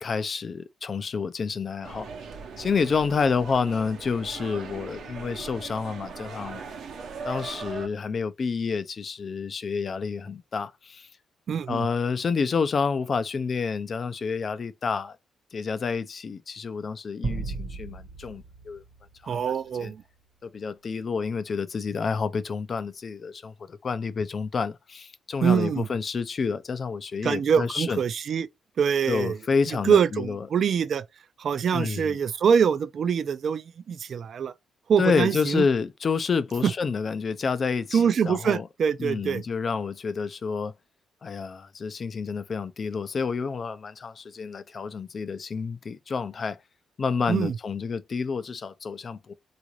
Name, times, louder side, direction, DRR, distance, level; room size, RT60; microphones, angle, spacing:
voice 1, 0.0-2.1 2.6-6.6 7.2-11.1 11.7-15.2 15.5-18.8 19.2-19.4 19.8-19.9 20.4-28.0 29.1-30.5 31.7-32.2 35.0-38.7 39.0-40.7 41.2-46.6 47.0-49.3, left 5 dB, 45° left, 0.4 m, -29 dB
sound 1, 1.8-7.9, right 5 dB, 75° right, 0.8 m, -39 dB
voice 2, 11.5-11.9 19.3-20.0 25.4-25.9 27.2-28.5 28.8-29.4 29.8-31.0 31.4-34.5 34.9-35.6 36.6-36.7 37.9-39.4 47.3-47.6, right 7 dB, 55° right, 0.4 m, -24 dB
sound 2, 17.2-19.8, right 3 dB, 40° right, 0.8 m, -35 dB
3.7 x 2.5 x 3.0 m
cardioid pair, 100°, 0 cm